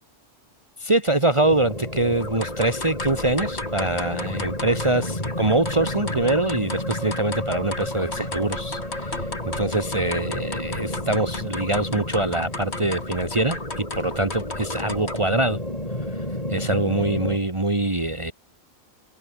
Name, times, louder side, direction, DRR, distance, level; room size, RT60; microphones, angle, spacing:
voice 1, 0.8-9.3 9.6-15.6 16.1-16.2 16.5-18.3, right 2 dB, 25° right, 2.2 m, -24 dB
sound 1, 1.4-17.4, left 1 dB, 30° left, 7.6 m, -32 dB
sound 2, 2.2-15.4, left 2 dB, 55° left, 4.0 m, -35 dB
omnidirectional pair, 1.3 m